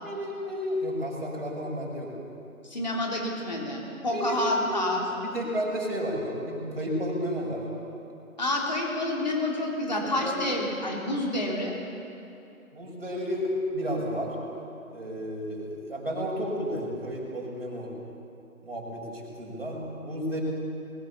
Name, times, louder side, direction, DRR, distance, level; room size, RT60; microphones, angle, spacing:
voice 1, 0.0-2.1 4.1-4.8 5.2-7.6 10.0-10.4 12.7-14.3 14.9-17.9 18.6-20.4, equal, 40° right, -2 dB, 6.6 m, -32 dB
voice 2, 2.7-5.0 8.4-11.7, left 1 dB, 30° left, -2 dB, 3.4 m, -28 dB
22.5 x 21.5 x 7.2 m, 2.7 s
figure-of-eight pair, 180°, 43 cm